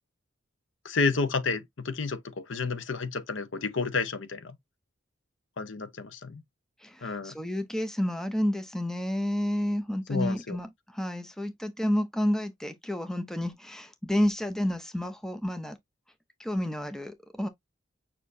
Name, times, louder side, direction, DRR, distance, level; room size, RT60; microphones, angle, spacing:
voice 1, 0.8-4.6 5.6-6.4 7.0-7.3 10.1-10.6, left 4 dB, 70° left, 0.8 m, -30 dB
voice 2, 6.8-15.8 16.4-17.5, equal, ahead, 0.5 m, -30 dB
6.5 x 2.7 x 2.6 m
head